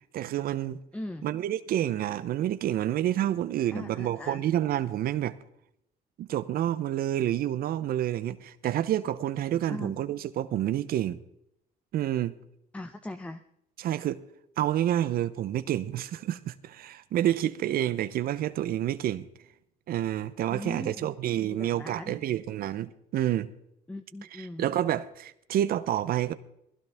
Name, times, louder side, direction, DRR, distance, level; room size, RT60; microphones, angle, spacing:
voice 1, 0.1-0.8 1.2-5.4 6.2-11.2 11.9-12.4 13.8-14.2 14.6-19.3 19.9-23.5 24.3-26.3, right 12 dB, 60° right, 0.7 m, -29 dB
voice 2, 0.9-1.3 3.7-4.4 9.7-9.9 12.7-13.4 20.5-21.1 21.5-22.2 23.9-24.7, left 1 dB, 5° left, 0.7 m, -39 dB
19.5 x 16.0 x 3.5 m
cardioid pair, 110°, 17 cm